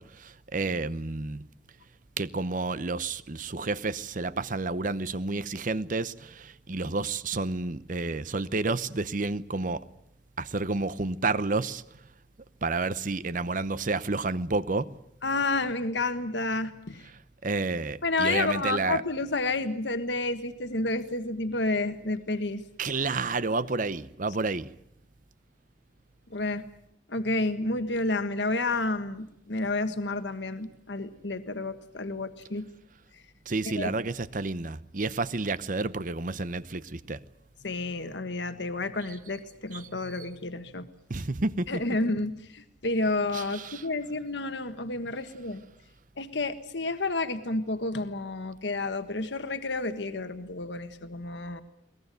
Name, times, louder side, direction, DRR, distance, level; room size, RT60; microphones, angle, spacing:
voice 1, 0.0-1.4 2.2-9.8 10.4-11.8 12.6-14.9 17.4-19.0 22.8-24.7 33.5-37.2 39.7-39.8 41.1-41.7 43.3-43.8, right 3 dB, 45° right, 0.8 m, -30 dB
voice 2, 15.2-17.0 18.0-22.6 26.3-26.6 27.1-32.6 33.8-33.9 37.6-40.9 41.7-45.6 46.2-51.6, left 2 dB, 70° left, 1.6 m, -30 dB
22.0 x 19.0 x 9.3 m
head